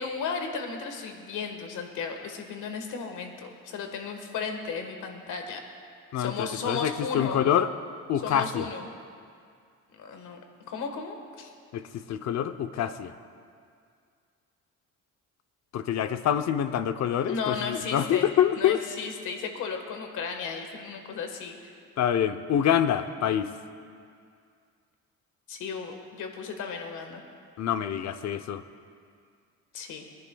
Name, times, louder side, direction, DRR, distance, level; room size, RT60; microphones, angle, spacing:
voice 1, 0.0-5.6 6.2-7.4 8.2-8.9 10.0-10.4 10.6-11.5 17.3-18.3 18.6-21.7 25.5-27.2 29.7-30.0, left 5 dB, 80° left, 4 dB, 1.5 m, -35 dB
voice 2, 6.1-7.7 8.1-8.7 11.7-13.1 15.7-18.8 22.0-23.5 27.6-28.6, left 9 dB, 60° left, 10 dB, 0.7 m, -26 dB
23.5 x 10.5 x 2.3 m, 2.2 s
cardioid pair, 90°, 30 cm